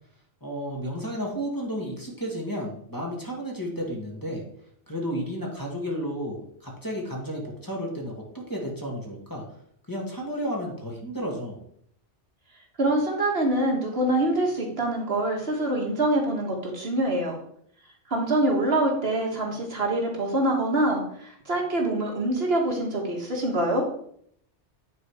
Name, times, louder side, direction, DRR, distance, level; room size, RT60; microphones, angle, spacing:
voice 1, 0.4-4.4 4.9-9.4 9.9-11.6, equal, 15° left, -2 dB, 1.8 m, -32 dB
voice 2, 12.8-17.3 18.1-23.8, right 1 dB, 60° right, 0 dB, 1.7 m, -25 dB
9.6 x 4.1 x 4.8 m, 0.67 s
omnidirectional pair, 1.2 m